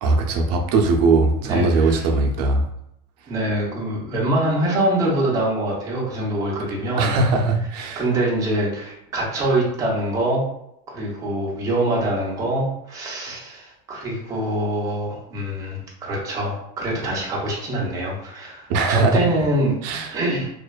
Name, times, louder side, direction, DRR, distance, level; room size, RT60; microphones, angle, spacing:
voice 1, 0.0-2.7 7.0-8.1 18.7-19.2 19.8-20.1, right 3 dB, 75° right, 3 dB, 0.5 m, -20 dB
voice 2, 1.5-2.0 3.3-7.1 8.0-10.5 10.9-19.8 20.1-20.5, right 1 dB, 15° right, -3 dB, 0.5 m, -24 dB
2.5 x 2.2 x 2.2 m, 0.77 s
cardioid pair, 170°, 21 cm